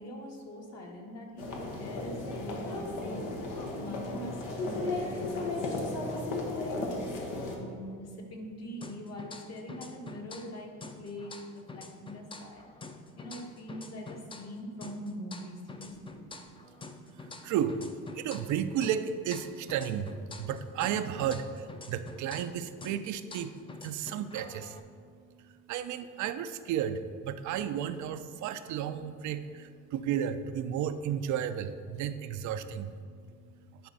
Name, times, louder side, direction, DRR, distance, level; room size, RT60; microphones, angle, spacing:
voice 1, 0.0-6.8 7.5-12.7 13.2-16.2, equal, 55° left, 0 dB, 1.6 m, -43 dB
sound 1, 1.4-7.6, left 2 dB, 90° left, 1.2 m, -35 dB
sound 2, 8.8-10.5 10.8-14.5 14.8-18.6 18.8-22.5 22.8-24.8, left 3 dB, 15° left, 0.5 m, -47 dB
voice 2, 16.1-33.9, right 9 dB, 70° right, 10 dB, 0.5 m, -34 dB
10.5 x 4.4 x 4.0 m, 2.1 s
cardioid pair, 90°, 30 cm